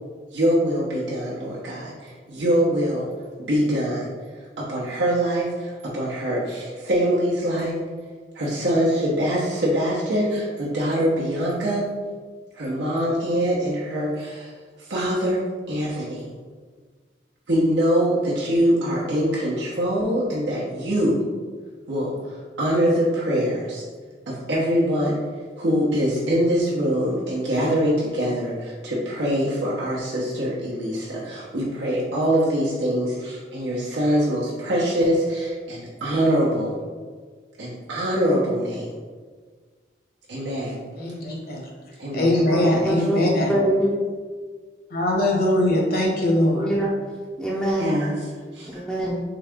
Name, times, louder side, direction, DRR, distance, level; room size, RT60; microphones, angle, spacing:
voice 1, 0.3-3.1 3.5-4.1 4.6-7.8 8.3-11.9 12.5-14.5 14.8-16.3 17.5-21.2 21.9-23.8 24.3-25.2 25.6-36.8 37.6-38.9 40.3-40.8 42.0-42.4 43.0-43.1 47.8-48.8, equal, 75° right, -7 dB, 0.9 m, -23 dB
voice 2, 41.0-41.6 42.1-43.5 44.9-46.7, left 1 dB, 55° left, -1 dB, 1.0 m, -21 dB
voice 3, 42.5-43.2 43.5-43.9 46.5-46.9 47.4-47.9 48.7-49.2, right 1 dB, 5° left, -6 dB, 0.5 m, -24 dB
3.9 x 3.7 x 3.5 m, 1.5 s
head